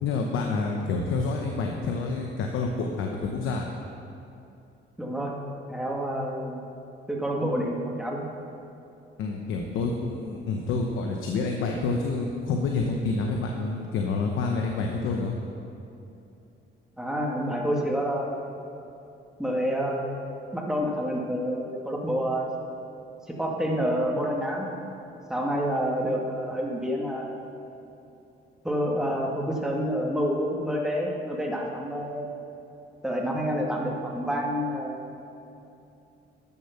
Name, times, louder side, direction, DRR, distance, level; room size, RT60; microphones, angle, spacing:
voice 1, 0.0-3.7 9.2-15.3, left 4 dB, 85° left, 1 dB, 1.0 m, -28 dB
voice 2, 5.0-5.4 5.7-6.6 7.1-8.3 17.0-18.5 19.4-20.1 20.5-22.5 23.3-24.7 25.3-27.3 28.6-32.3 33.0-35.1, equal, 5° right, -2 dB, 2.0 m, -28 dB
12.5 x 6.9 x 5.9 m, 2.8 s
cardioid pair, 90°, 20 cm